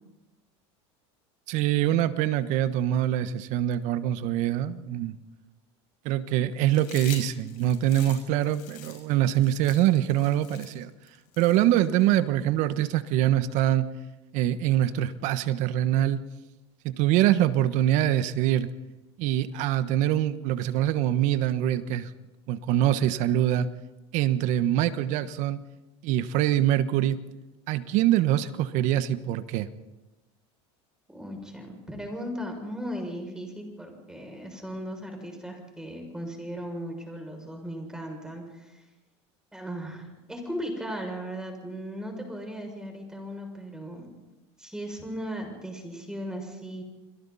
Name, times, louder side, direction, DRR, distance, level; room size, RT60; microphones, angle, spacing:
voice 1, 1.5-5.2 6.0-10.9 11.4-13.9 14.3-16.2 16.8-18.7 19.2-22.1 22.5-23.7 24.1-25.6 26.0-27.2 27.7-29.7, right 12 dB, 60° right, 12 dB, 1.3 m, -24 dB
Chewing mastication, 6.7-12.2, left 11 dB, 60° left, 6.6 m, -45 dB
voice 2, 31.1-38.8 39.5-44.1 44.6-46.8, equal, 5° right, 3 dB, 6.8 m, -37 dB
30.0 x 22.5 x 4.2 m, 1.1 s
supercardioid pair, 115°, 14 cm